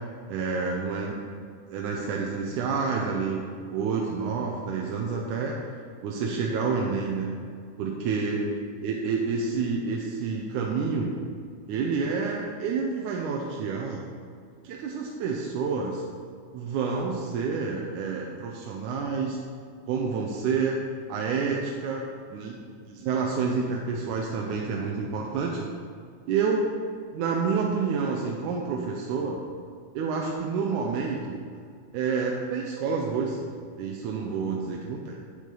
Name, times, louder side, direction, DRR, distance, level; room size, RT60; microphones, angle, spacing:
voice 1, 0.3-1.2 1.7-5.6 6.0-7.3 7.8-8.5 8.8-11.1 11.7-14.1 14.6-16.0 16.5-19.4 19.9-20.8 21.1-22.6 22.9-25.7 26.3-26.7 27.1-29.4 29.9-31.4 31.9-35.2, right 5 dB, 85° right, -1 dB, 2.2 m, -28 dB
9.3 x 8.3 x 3.9 m, 2.1 s
omnidirectional pair, 3.5 m